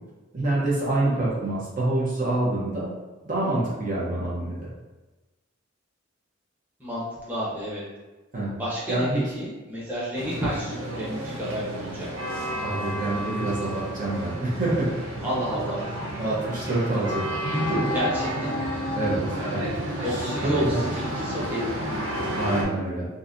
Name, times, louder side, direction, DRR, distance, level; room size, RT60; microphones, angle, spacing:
voice 1, 0.3-2.9 3.2-4.7 8.3-8.5 8.9-9.3 12.6-14.9 16.2-17.9 19.0-19.2 19.5-19.7 20.1-20.8 22.4-23.1, right 2 dB, 45° right, -6 dB, 0.9 m, -26 dB
voice 2, 6.8-7.8 8.6-12.1 15.2-15.9 17.9-18.8 20.0-21.9, equal, 10° right, -8 dB, 0.9 m, -31 dB
sound 1, 10.1-22.6, equal, 70° right, 0.7 m, -31 dB
3.8 x 2.8 x 2.6 m, 1.2 s
head